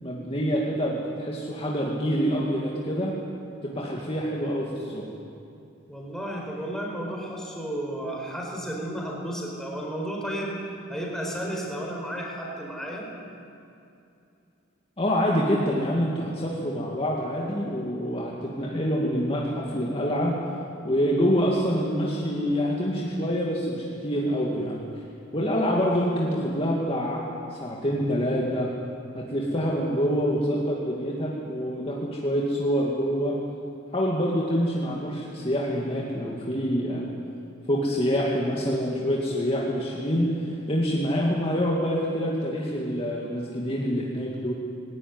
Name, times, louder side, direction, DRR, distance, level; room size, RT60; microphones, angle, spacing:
voice 1, 0.0-3.1 3.6-5.1 15.0-20.4 20.8-24.8 25.3-27.2 27.5-28.7 29.1-33.4 33.9-37.1 37.7-44.5, equal, 25° left, -3 dB, 2.2 m, -26 dB
voice 2, 5.9-10.6 10.9-13.1, right 1 dB, ahead, -2 dB, 4.4 m, -33 dB
19.5 x 18.0 x 9.7 m, 2.6 s
head